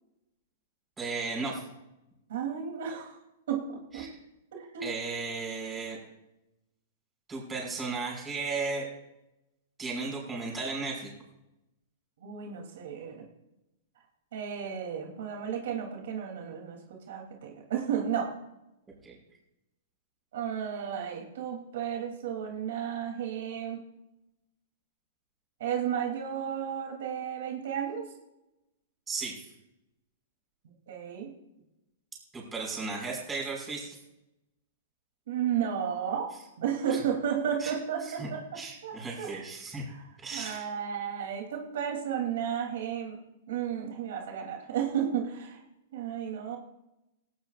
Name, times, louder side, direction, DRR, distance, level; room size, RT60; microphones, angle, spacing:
voice 1, 1.0-1.7 3.9-4.1 4.8-6.0 7.3-8.9 9.8-11.1 19.0-19.2 29.1-29.4 32.3-34.0 36.9-37.0 37.6-37.8 38.0-38.3 38.5-39.8 40.2-40.7, right 4 dB, 15° right, -2 dB, 5.7 m, -35 dB
voice 2, 2.3-3.1 3.5-4.1 4.5-4.9 12.2-13.2 14.3-16.8 17.1-18.3 20.3-23.8 25.6-28.1 30.9-31.3 35.3-36.3 36.6-39.4 39.9-40.0 40.3-43.2 43.5-45.6 45.9-46.6, right 8 dB, 70° right, 1 dB, 3.2 m, -33 dB
18.5 x 18.0 x 2.5 m, 0.91 s
hypercardioid pair, 155°, 0 cm